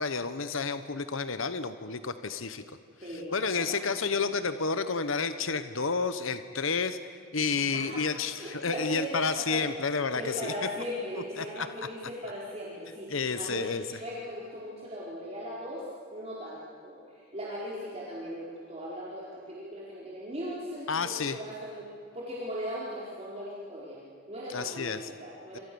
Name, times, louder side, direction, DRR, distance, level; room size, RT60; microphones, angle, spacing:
voice 1, 0.0-2.6 3.1-7.0 7.3-10.7 11.4-11.7 13.1-13.8 20.9-21.4 24.5-25.1 25.5-25.6, left 4 dB, 65° left, 11 dB, 1.0 m, -30 dB
voice 2, 3.0-4.1 7.4-8.1 8.4-9.6 10.1-15.8 16.1-21.8 22.1-24.0 24.3-25.6, equal, 30° right, -6 dB, 4.5 m, -39 dB
28.5 x 26.5 x 7.0 m, 2.5 s
head